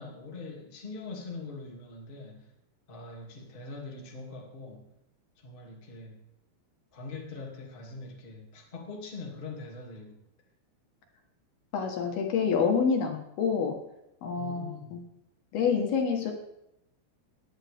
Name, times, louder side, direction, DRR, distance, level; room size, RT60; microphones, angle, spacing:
voice 1, 0.0-2.5 2.9-4.9 5.4-6.2 6.9-10.2 14.3-15.0, left 3 dB, 20° left, -1 dB, 1.3 m, -42 dB
voice 2, 11.7-13.8 14.2-15.0 15.5-16.3, left 6 dB, 65° left, 2 dB, 3.0 m, -27 dB
18.5 x 11.0 x 3.5 m, 0.84 s
omnidirectional pair, 5.3 m